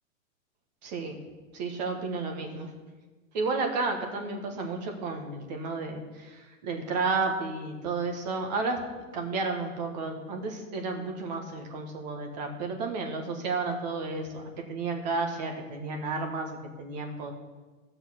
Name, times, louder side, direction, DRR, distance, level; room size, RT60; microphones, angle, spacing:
voice 1, 0.8-1.2 1.5-2.7 3.3-8.8 9.1-14.4 14.7-17.3, right 3 dB, 30° right, 4 dB, 1.4 m, -32 dB
14.5 x 6.6 x 6.3 m, 1.3 s
supercardioid pair, 175°, 40 cm